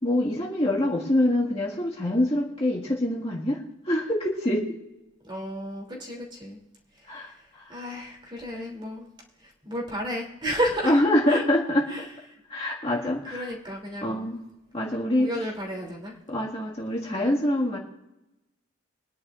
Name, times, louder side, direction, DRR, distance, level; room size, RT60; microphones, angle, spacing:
voice 1, 0.0-4.7 7.1-7.7 10.8-12.0 12.5-13.5 14.0-14.4 14.7-15.3 16.3-17.8, left 1 dB, 30° left, -4 dB, 1.8 m, -25 dB
voice 2, 5.2-6.6 7.7-9.1 9.6-10.9 11.3-11.4 11.9-12.0 13.2-14.3 15.1-16.1, equal, 25° right, -1 dB, 2.9 m, -32 dB
23.5 x 10.5 x 2.5 m, 0.96 s
head